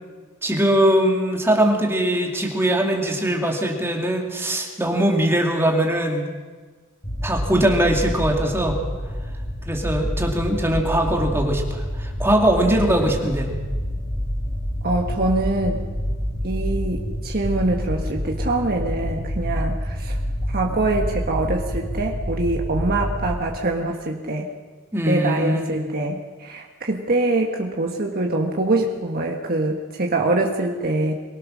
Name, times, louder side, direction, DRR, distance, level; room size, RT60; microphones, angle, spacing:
voice 1, 0.4-6.3 7.2-8.8 9.7-13.5 24.9-25.9, right 1 dB, 10° right, 1 dB, 2.5 m, -21 dB
sound 1, 7.0-23.4, equal, 40° left, 5.2 m, -28 dB
voice 2, 14.8-15.9 16.4-20.2 20.5-24.5 25.0-31.1, right 2 dB, 50° right, 1 dB, 1.6 m, -24 dB
23.5 x 18.0 x 6.4 m, 1.4 s
head